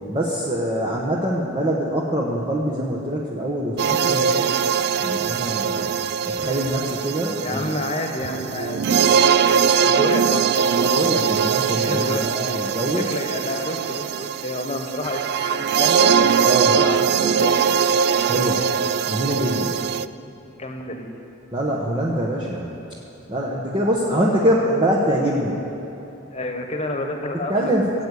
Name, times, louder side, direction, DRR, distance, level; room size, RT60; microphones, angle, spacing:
voice 1, 0.1-4.6 5.0-5.9 6.2-7.7 10.7-13.1 16.4-16.8 18.2-18.7 19.1-19.7 21.5-22.7 23.3-25.6 27.5-27.9, right 1 dB, 25° right, -4 dB, 1.1 m, -24 dB
creepy backround noize with FX, 3.8-20.1, right 7 dB, 55° right, 0.3 m, -21 dB
voice 2, 7.4-10.4 11.8-12.6 13.0-16.1 16.7-17.7 20.5-21.1 26.3-27.7, left 1 dB, 30° left, 3 dB, 1.3 m, -29 dB
15.5 x 8.1 x 8.4 m, 2.9 s
head